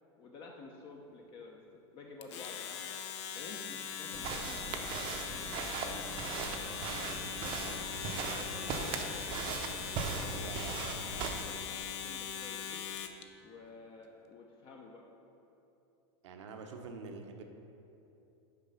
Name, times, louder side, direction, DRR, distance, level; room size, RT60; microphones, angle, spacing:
voice 1, 0.2-1.6 1.9-2.9 3.3-7.8 8.3-9.6 10.1-12.8 13.4-15.0, left 3 dB, 35° left, 0 dB, 0.6 m, -51 dB
Domestic sounds home sounds, 2.2-13.2, left 8 dB, 75° left, 0.6 m, -41 dB
sound 1, 4.1-11.4, right 5 dB, 35° right, 0.6 m, -39 dB
voice 2, 10.1-10.9 16.2-17.4, right 4 dB, 85° right, 4 dB, 0.8 m, -46 dB
6.6 x 4.8 x 5.5 m, 2.9 s
supercardioid pair, 145°, 15 cm